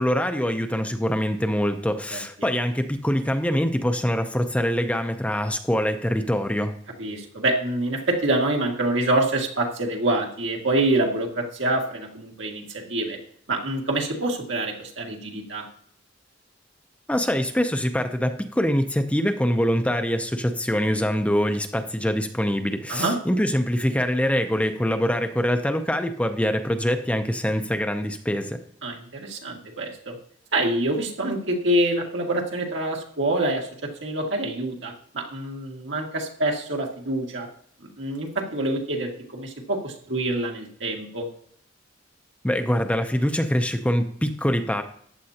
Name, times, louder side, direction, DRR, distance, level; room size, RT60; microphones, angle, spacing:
voice 1, 0.0-6.7 17.1-28.6 42.4-44.8, equal, 5° left, 6 dB, 0.6 m, -24 dB
voice 2, 2.1-2.5 7.0-13.2 13.5-15.6 22.9-23.1 28.8-30.2 30.5-37.5 38.0-41.3, right 1 dB, 70° right, 0 dB, 2.1 m, -26 dB
14.0 x 9.6 x 2.9 m, 0.63 s
head